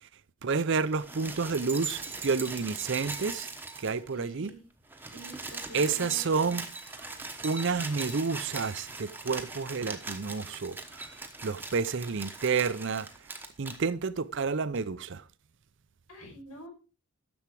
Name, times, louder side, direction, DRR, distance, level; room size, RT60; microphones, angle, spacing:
voice 1, 0.4-3.5 3.8-4.5 5.7-6.6 7.4-10.8 11.4-13.1 13.6-15.2, right 5 dB, 55° right, 0.5 m, -30 dB
sound 1, 0.8-4.2 4.4-4.5 4.8-13.8 14.8-14.9, right 3 dB, 10° right, 1.0 m, -40 dB
voice 2, 4.1-4.7 5.0-6.6 16.1-16.7, right 1 dB, 80° left, 5.9 m, -47 dB
10.5 x 7.1 x 4.6 m
head